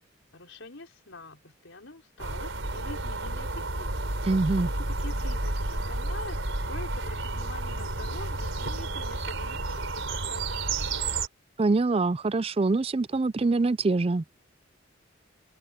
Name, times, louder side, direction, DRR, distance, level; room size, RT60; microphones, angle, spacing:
voice 1, 0.3-4.1 4.7-10.7, left 2 dB, 70° left, 4.8 m, -45 dB
sound 1, 2.2-11.3, right 2 dB, 70° right, 4.7 m, -31 dB
voice 2, 4.3-4.7 11.6-14.2, right 3 dB, 30° right, 0.4 m, -24 dB
head